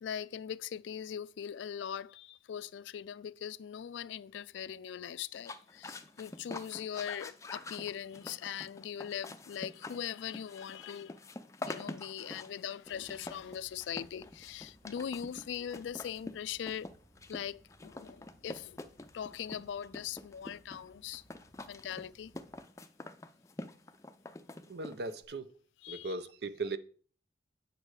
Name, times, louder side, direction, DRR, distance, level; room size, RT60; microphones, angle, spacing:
voice 1, 0.0-11.2 11.6-16.9 17.3-18.8 19.1-21.2 21.7-22.3 25.8-26.1, left 9 dB, 85° left, 0.3 m, -41 dB
sound 1, 5.3-25.2, left 2 dB, 15° left, 0.4 m, -46 dB
sound 2, 12.8-22.6, right 1 dB, 80° right, 3.5 m, -65 dB
voice 2, 24.7-25.6 25.9-26.8, right 3 dB, 60° right, 0.6 m, -38 dB
8.3 x 5.3 x 4.7 m
head